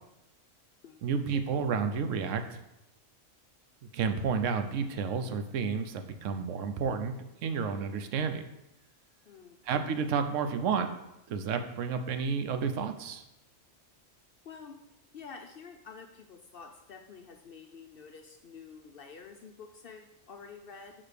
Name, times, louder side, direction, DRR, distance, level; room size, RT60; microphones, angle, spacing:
voice 1, 1.0-2.6 3.9-7.1 7.4-8.5 9.6-10.9 11.3-13.2, right 6 dB, 75° right, 8 dB, 1.0 m, -31 dB
voice 2, 9.3-9.6 14.4-14.8 15.1-20.9, left 5 dB, 60° left, 4 dB, 0.6 m, -49 dB
6.4 x 3.9 x 5.0 m, 0.88 s
omnidirectional pair, 1.3 m